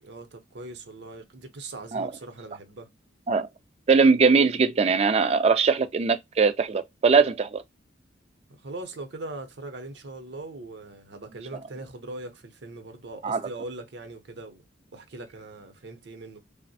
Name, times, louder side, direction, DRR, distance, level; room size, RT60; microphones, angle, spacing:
voice 1, 0.0-2.9 8.5-14.6 14.9-16.4, right 2 dB, 60° right, 0.7 m, -40 dB
voice 2, 3.9-7.6 13.2-13.4, right 4 dB, 35° right, 0.3 m, -21 dB
3.3 x 2.1 x 2.6 m
head